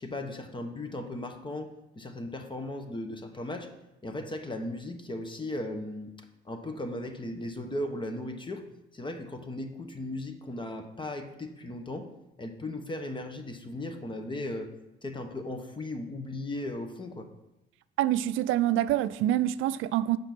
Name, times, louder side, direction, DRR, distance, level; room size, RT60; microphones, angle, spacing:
voice 1, 0.0-3.7 4.0-6.1 6.4-8.6 8.9-12.1 12.4-14.7 15.0-17.3, left 1 dB, 25° left, 1.1 m, -37 dB
voice 2, 18.0-20.2, right 13 dB, 90° right, 0.4 m, -26 dB
7.8 x 5.3 x 6.0 m
cardioid pair, 90°, 20 cm